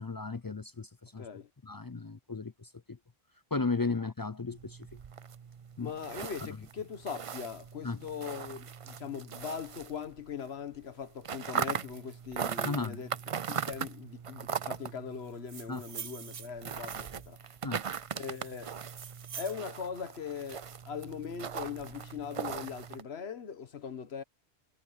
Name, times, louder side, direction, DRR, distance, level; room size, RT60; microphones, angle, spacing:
voice 1, 0.0-1.3 1.6-3.0 3.5-4.8 5.8-5.9 7.8-8.0 12.6-13.0 15.7-15.8 17.6-17.8, left 3 dB, 30° left, 0.4 m, -35 dB
voice 2, 1.2-1.5 3.8-4.0 5.8-13.1 13.5-17.4 18.1-18.7 19.3-24.2, left 7 dB, 75° left, 1.4 m, -40 dB
sound 1, 4.5-10.5 10.7-23.0, right 7 dB, 45° right, 0.5 m, -39 dB
sound 2, 15.3-17.3 17.9-19.6, right 7 dB, 65° right, 1.1 m, -46 dB
omnidirectional pair, 1.1 m